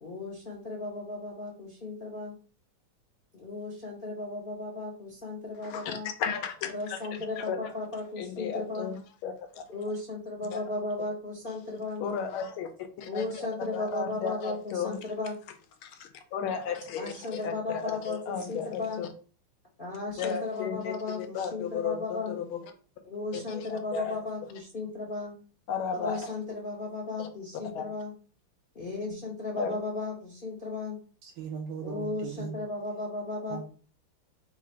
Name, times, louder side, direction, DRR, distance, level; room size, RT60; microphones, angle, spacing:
voice 1, 0.0-2.4 3.3-6.1 6.7-8.9 9.7-12.1 13.1-15.4 17.0-19.0 19.8-22.3 23.1-25.4 25.9-28.1 28.7-31.0 31.8-33.6, left 2 dB, 50° left, -3 dB, 0.6 m, -35 dB
voice 2, 5.6-7.0 7.4-7.7 8.2-9.6 10.5-10.6 12.0-13.5 13.7-15.0 15.8-19.1 20.2-22.6 23.3-24.2 25.7-26.3 27.2-27.3 27.7-27.8 29.6-29.8, left 7 dB, 85° left, 6 dB, 1.5 m, -34 dB
voice 3, 31.2-32.6 33.5-33.6, right 6 dB, 75° right, 4 dB, 1.1 m, -38 dB
3.8 x 2.5 x 4.3 m, 0.39 s
omnidirectional pair, 2.3 m